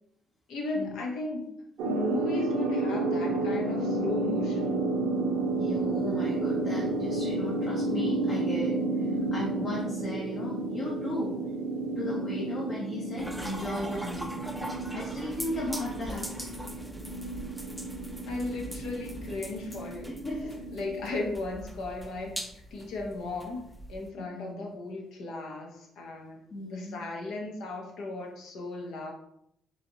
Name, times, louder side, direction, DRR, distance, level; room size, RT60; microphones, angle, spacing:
voice 1, 0.5-1.5 1.8-4.8 18.3-20.2 20.7-22.4 22.7-29.1, left 2 dB, 75° left, 0 dB, 0.9 m, -36 dB
sound 1, 1.8-21.1, right 2 dB, 80° right, 0.6 m, -31 dB
voice 2, 5.5-8.8 9.1-11.4 12.0-14.3 14.6-16.3 20.2-20.5 24.2-24.7 26.5-27.0, left 1 dB, 50° left, -4 dB, 1.0 m, -36 dB
sound 2, 13.2-24.1, equal, ahead, 0.5 m, -42 dB
4.0 x 3.1 x 2.8 m, 0.74 s
supercardioid pair, 65°, 0 cm